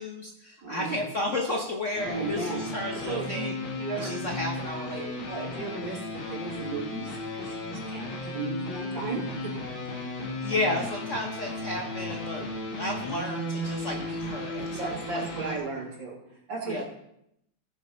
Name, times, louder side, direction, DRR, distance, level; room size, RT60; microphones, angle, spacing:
voice 1, 0.0-3.5 4.0-5.1 10.0-15.6 16.7-16.8, left 2 dB, 45° left, 1 dB, 1.2 m, -33 dB
voice 2, 0.6-1.0 2.0-2.6 3.0-4.2 5.3-9.5 14.8-16.8, right 3 dB, 60° right, -3 dB, 3.6 m, -35 dB
sound 1, 1.9-15.6, left 1 dB, 70° left, 2.7 m, -35 dB
15.5 x 7.1 x 4.5 m, 0.79 s
omnidirectional pair, 2.3 m